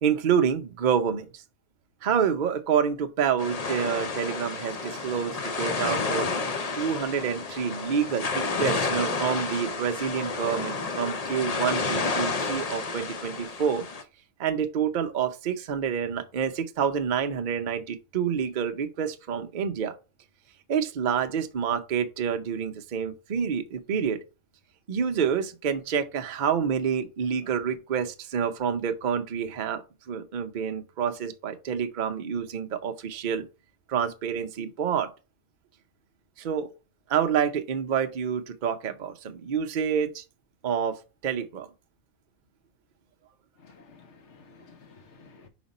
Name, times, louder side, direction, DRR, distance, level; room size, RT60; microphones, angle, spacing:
voice 1, 0.0-1.4 2.0-6.3 6.8-13.8 14.4-19.9 20.7-24.2 24.9-29.8 30.1-33.4 33.9-35.1 36.4-36.7 37.1-40.2 40.6-41.7, right 7 dB, 45° right, 0.6 m, -28 dB
sound 1, 3.4-14.0, left 4 dB, 40° left, 0.5 m, -30 dB
voice 2, 43.6-45.5, left 4 dB, 60° left, 1.2 m, -53 dB
5.1 x 5.1 x 4.0 m
omnidirectional pair, 1.5 m